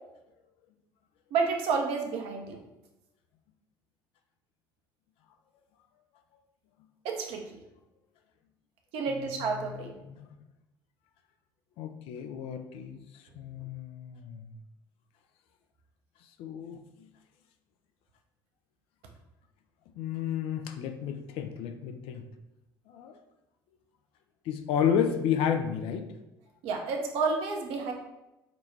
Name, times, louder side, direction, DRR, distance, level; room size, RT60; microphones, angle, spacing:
voice 1, 1.3-2.6 7.0-7.5 8.9-9.9 26.6-27.9, right 4 dB, 60° right, 2 dB, 0.7 m, -30 dB
voice 2, 11.8-13.0 13.3-14.5 16.4-16.8 20.0-22.2 22.9-23.2 24.5-26.1, left 8 dB, 60° left, 6 dB, 0.4 m, -31 dB
5.1 x 2.2 x 3.1 m, 0.95 s
hypercardioid pair, 60°, 11 cm